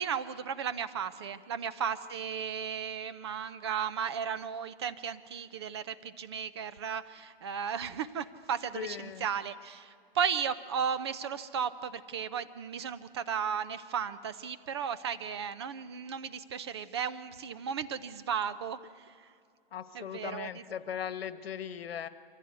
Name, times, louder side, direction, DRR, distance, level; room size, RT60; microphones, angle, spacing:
voice 1, 0.0-19.3 19.9-20.6, right 7 dB, 30° right, 13 dB, 0.5 m, -35 dB
voice 2, 8.7-9.2 19.7-22.1, left 8 dB, 80° left, 13 dB, 1.3 m, -38 dB
24.0 x 15.5 x 9.5 m, 2.3 s
hypercardioid pair, 165°, 29 cm